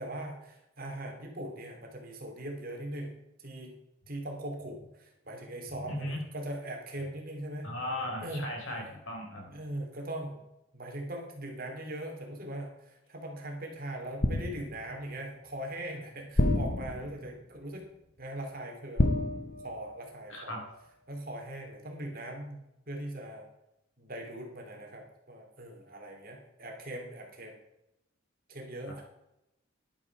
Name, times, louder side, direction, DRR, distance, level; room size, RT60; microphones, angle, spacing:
voice 1, 0.0-3.8 4.1-7.7 8.2-8.4 9.5-10.5 10.7-17.9 18.2-19.1 19.6-20.6 21.1-23.5 24.0-27.6 28.5-29.0, right 1 dB, 45° right, 2 dB, 3.0 m, -40 dB
voice 2, 5.9-6.2 7.6-9.6 20.3-20.6 28.9-29.0, left 1 dB, 70° left, 0 dB, 4.7 m, -37 dB
sound 1, 14.2-15.0 16.4-17.4 19.0-20.1 20.4-20.6, left 1 dB, 40° left, 1.0 m, -29 dB
11.5 x 9.7 x 4.8 m, 0.86 s
head